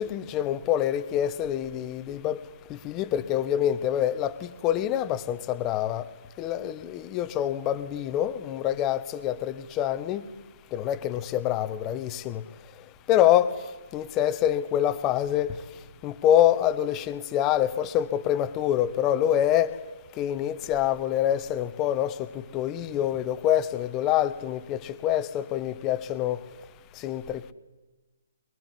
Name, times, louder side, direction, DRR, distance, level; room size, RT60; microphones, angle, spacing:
voice 1, 0.0-2.4 2.7-6.1 6.4-10.2 10.7-12.4 13.1-13.5 13.9-15.6 16.0-19.7 20.2-26.4 27.0-27.5, left 11 dB, 20° left, 14 dB, 1.2 m, -26 dB
23.5 x 22.5 x 9.9 m, 1.2 s
figure-of-eight pair, 140°, 0 cm